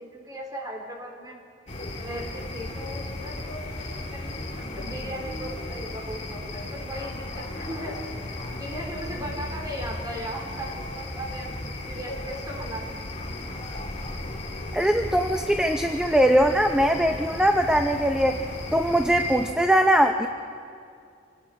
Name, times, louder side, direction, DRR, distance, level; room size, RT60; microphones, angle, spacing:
voice 1, 0.0-1.4 2.0-8.0 8.5-13.1, equal, 20° right, 0 dB, 3.9 m, -37 dB
sound 1, 1.7-19.5, left 1 dB, 35° left, 2.7 m, -35 dB
voice 2, 14.7-18.4 18.7-20.3, equal, 5° right, 5 dB, 0.6 m, -21 dB
27.0 x 19.5 x 4.9 m, 2.3 s
head